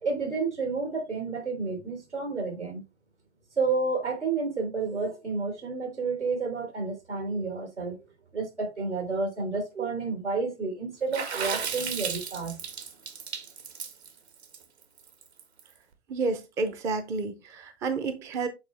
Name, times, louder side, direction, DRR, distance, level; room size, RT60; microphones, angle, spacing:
voice 1, 0.0-2.8 3.6-8.0 8.3-12.6, right 4 dB, 85° right, 3.2 m, -30 dB
Water / Splash splatter, 11.1-15.6, right 6 dB, 70° right, 1.4 m, -34 dB
voice 2, 16.1-18.5, right 3 dB, 10° right, 0.4 m, -30 dB
7.7 x 4.3 x 3.0 m
figure-of-eight pair, 115°, 34 cm